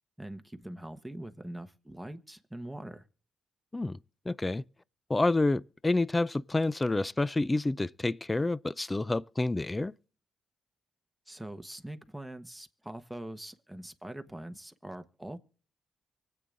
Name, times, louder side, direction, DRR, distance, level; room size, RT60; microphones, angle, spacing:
voice 1, 0.2-3.0 11.3-15.4, right 1 dB, 5° right, 1.2 m, -43 dB
voice 2, 4.3-4.6 5.1-9.9, left 2 dB, 20° left, 0.4 m, -28 dB
24.5 x 8.5 x 2.6 m
cardioid pair, 70°, 0 cm